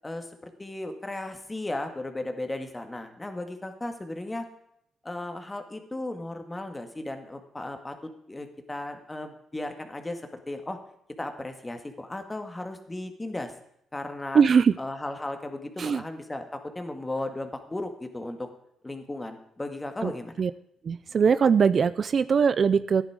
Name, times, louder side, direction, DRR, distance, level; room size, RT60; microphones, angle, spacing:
voice 1, 0.6-4.5 5.0-10.8 11.2-13.5 13.9-14.4 14.8-18.5 18.8-20.3, left 2 dB, 15° left, 6 dB, 1.9 m, -35 dB
voice 2, 14.3-14.7 15.8-16.0 20.0-20.1 20.4-20.5 20.8-23.0, right 6 dB, 45° right, 14 dB, 0.4 m, -21 dB
13.5 x 10.5 x 4.9 m, 0.73 s
cardioid pair, 90°, 0 cm